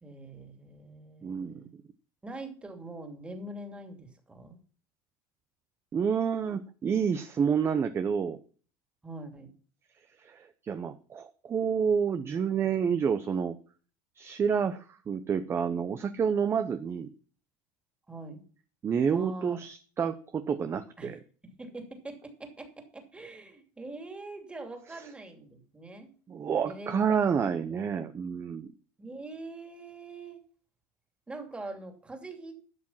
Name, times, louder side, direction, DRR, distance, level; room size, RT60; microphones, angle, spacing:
voice 1, 0.0-1.7 2.2-4.6 9.0-9.5 18.1-18.4 19.1-19.6 21.0-21.2 21.4-26.1 26.6-27.2 29.0-30.4 31.3-32.5, right 2 dB, 10° right, 4 dB, 2.7 m, -43 dB
voice 2, 1.2-1.6 5.9-8.4 10.2-13.6 14.2-17.1 18.8-21.2 26.3-28.7, right 7 dB, 25° right, 10 dB, 0.9 m, -29 dB
12.0 x 7.5 x 5.7 m, 0.41 s
supercardioid pair, 125°, 10 cm